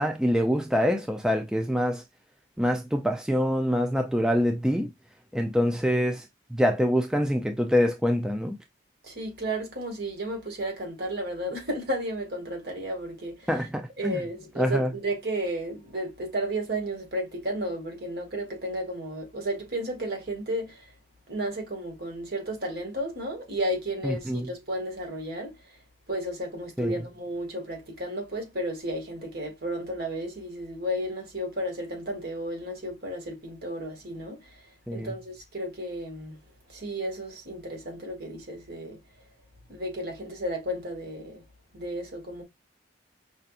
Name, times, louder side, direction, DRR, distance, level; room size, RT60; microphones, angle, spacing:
voice 1, 0.0-2.0 2.6-4.9 5.3-6.3 6.5-8.6 13.5-14.2 14.6-14.9 24.0-24.5 26.8-27.0 34.9-35.1, equal, 5° right, 0.4 m, -25 dB
voice 2, 9.0-13.5 14.0-20.9 21.3-25.8 26.1-36.4 36.7-39.0 39.7-41.4 41.7-42.4, right 1 dB, 55° right, 2.2 m, -33 dB
5.5 x 2.6 x 2.4 m
head